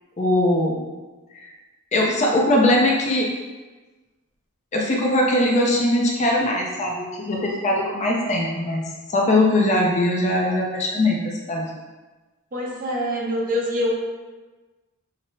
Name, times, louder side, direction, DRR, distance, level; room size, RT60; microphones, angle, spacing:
voice 1, 0.2-0.8 1.4-1.5 1.9-3.3 4.7-8.8 9.1-11.7, left 1 dB, 35° left, -1 dB, 0.4 m, -20 dB
voice 2, 12.5-13.9, left 1 dB, 40° right, -2 dB, 0.6 m, -25 dB
5.2 x 2.0 x 2.6 m, 1.3 s
head